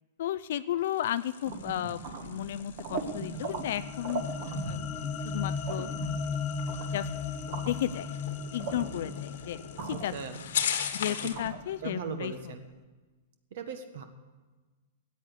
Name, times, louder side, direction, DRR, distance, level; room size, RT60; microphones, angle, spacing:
voice 1, 0.2-4.3 4.6-4.9 5.3-6.5 6.9-7.1 7.7-8.1 8.5-9.6 9.9-10.1 10.9-12.3, left 12 dB, 65° left, 13 dB, 0.4 m, -33 dB
sound 1, 0.8-11.5, left 8 dB, 80° left, 1.5 m, -40 dB
sound 2, 1.4-12.6, right 4 dB, 45° right, 1.7 m, -41 dB
sound 3, 3.2-11.6, left 5 dB, 25° left, 1.0 m, -37 dB
voice 2, 9.9-10.4 11.0-11.3 11.8-12.6 13.5-14.0, right 6 dB, 65° right, 8 dB, 1.4 m, -38 dB
14.0 x 8.5 x 8.3 m, 1.3 s
supercardioid pair, 155°, 0 cm